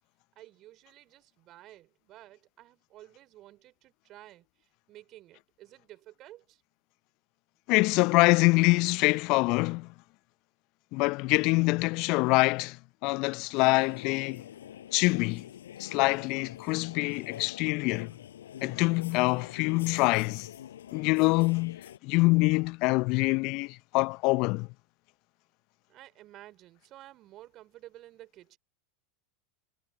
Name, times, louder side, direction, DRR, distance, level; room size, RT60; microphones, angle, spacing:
voice 1, 0.4-6.6 25.9-28.6, right 15 dB, 40° right, 4.0 m, -52 dB
voice 2, 7.7-9.9 10.9-12.8 13.0-14.4 14.9-15.4 15.8-18.1 18.6-20.5 20.9-24.7, left 25 dB, 50° left, 0.6 m, -25 dB
sound 1, 13.5-22.0, left 10 dB, 70° left, 4.7 m, -46 dB
figure-of-eight pair, 85°, 0 cm